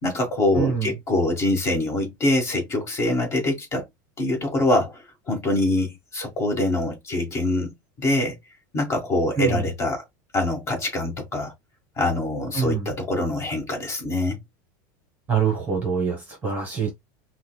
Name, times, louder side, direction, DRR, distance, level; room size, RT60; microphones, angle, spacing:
voice 1, 0.0-3.8 4.2-7.7 8.0-8.4 8.7-10.0 10.3-11.5 12.0-14.4, left 2 dB, 25° left, 1.7 m, -24 dB
voice 2, 0.6-0.9 9.4-9.6 12.5-12.8 15.3-16.9, right 6 dB, 15° right, 1.1 m, -24 dB
5.3 x 2.2 x 2.3 m
supercardioid pair, 160°, 10 cm